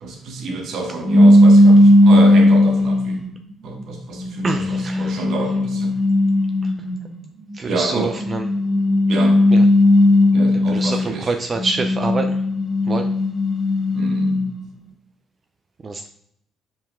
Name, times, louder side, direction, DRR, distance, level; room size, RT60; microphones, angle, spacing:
voice 1, 0.0-3.3 3.6-5.9 7.7-8.3 9.1-9.5 10.3-11.4 13.9-14.5, right 3 dB, 70° right, 4 dB, 1.2 m, -28 dB
sound 1, 1.0-3.2 3.9-7.0 8.1-11.1 11.5-14.5, left 1 dB, 10° left, 2.3 m, -15 dB
voice 2, 4.4-5.1 7.6-8.4 10.7-11.0 11.3-12.3 12.9-13.0 15.8-16.1, right 3 dB, 40° right, 6 dB, 0.5 m, -25 dB
5.5 x 4.6 x 3.7 m, 0.72 s
supercardioid pair, 65°, 0 cm